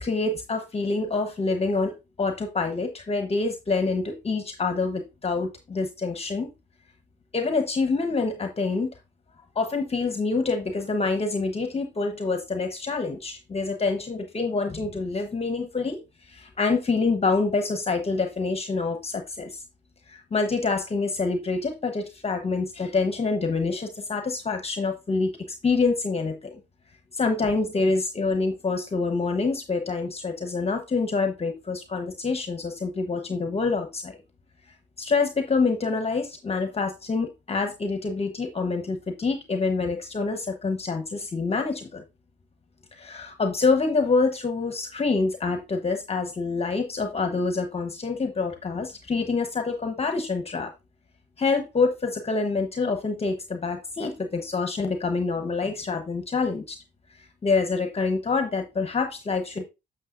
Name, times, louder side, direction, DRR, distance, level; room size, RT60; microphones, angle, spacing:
voice 1, 0.0-6.5 7.3-8.9 9.5-16.0 16.3-19.5 20.1-25.4 25.6-26.6 27.1-34.2 35.0-42.0 43.0-50.7 51.4-56.8 57.4-59.7, left 4 dB, 30° left, 6 dB, 1.1 m, -26 dB
8.4 x 6.7 x 2.5 m, 0.24 s
cardioid pair, 90°, 20 cm